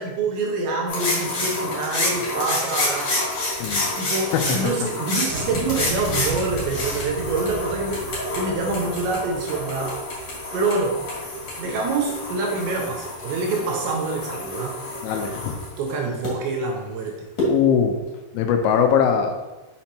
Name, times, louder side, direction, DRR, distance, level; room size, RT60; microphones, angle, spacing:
voice 1, 0.0-3.2 4.0-10.0 10.5-11.0 11.6-14.7 15.8-17.2, right 3 dB, 85° right, 0 dB, 2.7 m, -26 dB
sound 1, 0.9-16.3 17.4-17.5, left 1 dB, 45° left, 2.7 m, -28 dB
sound 2, 5.3-11.6 12.0-12.6, right 3 dB, 60° right, 0.8 m, -36 dB
voice 2, 15.0-15.6 17.5-18.0 18.3-19.4, left 7 dB, 85° left, 5 dB, 3.0 m, -20 dB
6.2 x 5.9 x 2.8 m, 1.1 s
omnidirectional pair, 5.6 m